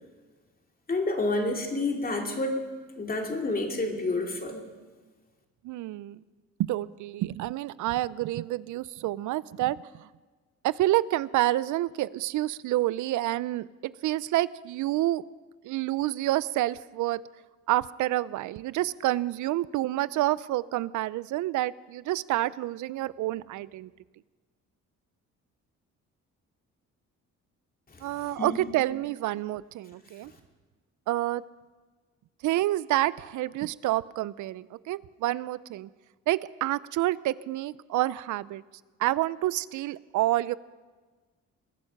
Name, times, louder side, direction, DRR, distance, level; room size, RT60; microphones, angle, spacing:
voice 1, 0.9-2.7 3.0-4.6 27.9-28.6 30.2-30.3, left 2 dB, 30° left, 2 dB, 2.6 m, -29 dB
voice 2, 5.6-6.2 6.6-10.1 10.6-15.2 15.6-17.2 17.7-23.9 28.0-30.3 31.1-31.4 32.4-35.9 36.3-38.6 39.0-40.5, right 15 dB, 80° right, 19 dB, 0.5 m, -28 dB
21.0 x 9.9 x 5.8 m, 1.4 s
cardioid pair, 90°, 30 cm